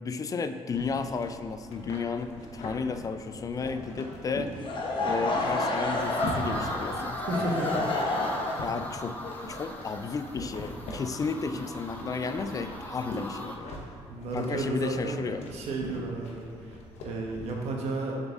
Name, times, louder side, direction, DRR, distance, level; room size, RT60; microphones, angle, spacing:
voice 1, 0.0-4.5 5.0-7.6 8.6-9.2 9.5-13.7 14.3-15.4, left 5 dB, 30° left, 9 dB, 0.3 m, -33 dB
sound 1, 0.7-17.7, left 1 dB, 85° left, 0.9 m, -42 dB
Laughter / Crowd, 4.6-10.5, left 2 dB, 50° left, 0.9 m, -30 dB
sound 2, 6.0-13.6, equal, 15° left, 0.8 m, -41 dB
voice 2, 7.2-7.8 8.5-8.6 14.1-18.2, right 2 dB, 75° right, 0 dB, 1.0 m, -33 dB
7.1 x 4.0 x 3.6 m, 2.4 s
cardioid pair, 85°, 11 cm